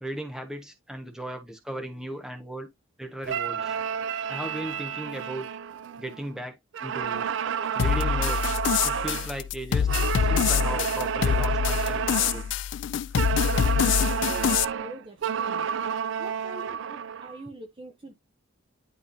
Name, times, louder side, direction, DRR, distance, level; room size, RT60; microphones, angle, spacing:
voice 1, 0.0-2.7 3.0-3.8 4.3-5.5 6.0-7.3 7.7-8.4 8.8-9.9 10.2-12.5, right 1 dB, 5° right, 1.2 m, -36 dB
sound 1, 3.2-6.3 6.7-9.3 9.9-12.5 13.2-17.4, right 7 dB, 60° right, 0.3 m, -30 dB
sound 2, 7.8-14.6, left 8 dB, 60° left, 0.3 m, -25 dB
voice 2, 14.3-15.7 16.2-18.1, right 1 dB, 25° right, 0.8 m, -44 dB
10.5 x 3.6 x 2.7 m
head